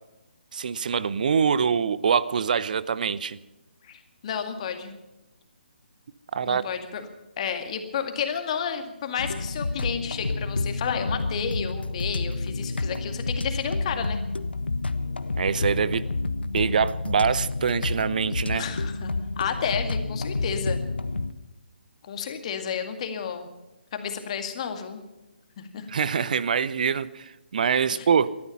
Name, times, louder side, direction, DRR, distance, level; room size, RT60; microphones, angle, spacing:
voice 1, 0.5-3.4 6.3-6.6 15.4-16.1 16.5-18.6 25.9-28.5, right 6 dB, 50° right, 17 dB, 0.8 m, -24 dB
voice 2, 3.8-4.9 6.5-7.1 7.4-14.2 18.5-20.8 22.1-23.5 23.9-25.0 25.6-25.9 27.9-28.1, left 7 dB, 35° left, 6 dB, 2.1 m, -31 dB
sound 1, 9.2-21.3, left 3 dB, 75° left, 1.0 m, -29 dB
18.5 x 13.5 x 5.6 m, 1.0 s
figure-of-eight pair, 140°, 6 cm